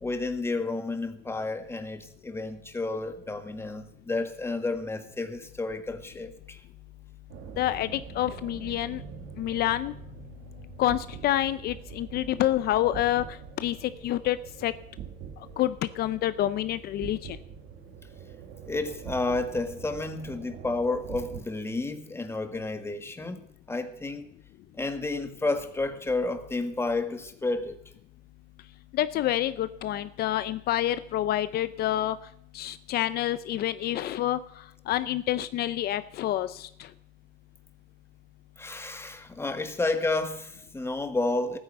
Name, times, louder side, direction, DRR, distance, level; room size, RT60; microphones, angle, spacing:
voice 1, 0.0-6.6 18.7-24.3 24.7-27.8 38.6-41.6, left 2 dB, 15° left, 1.6 m, -31 dB
sound 1, 7.3-21.4, right 9 dB, 85° right, 1.6 m, -44 dB
voice 2, 7.6-9.0 9.4-9.9 10.8-13.2 13.6-14.7 15.6-17.4 28.9-32.2 32.5-34.4 34.9-36.7, left 13 dB, 65° left, 0.6 m, -27 dB
13.5 x 9.7 x 7.8 m
cardioid pair, 110°, 17 cm